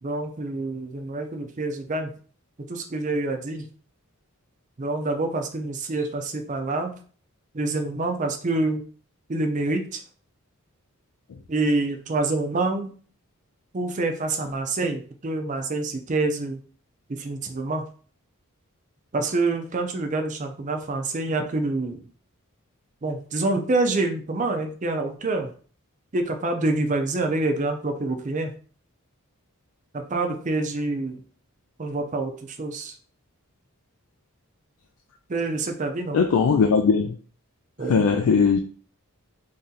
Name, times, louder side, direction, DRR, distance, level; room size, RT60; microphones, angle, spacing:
voice 1, 0.0-2.1 2.7-3.7 4.8-6.9 7.5-8.8 9.3-10.0 11.5-12.9 13.7-16.6 17.1-17.8 19.1-22.0 23.0-25.5 26.1-28.5 30.1-31.2 31.8-32.3 32.6-32.9 35.3-36.2 37.8-38.0, right 2 dB, 35° right, 0.5 m, -26 dB
voice 2, 36.1-37.1 37.9-38.6, left 5 dB, 80° left, 0.4 m, -19 dB
3.2 x 2.8 x 3.7 m
head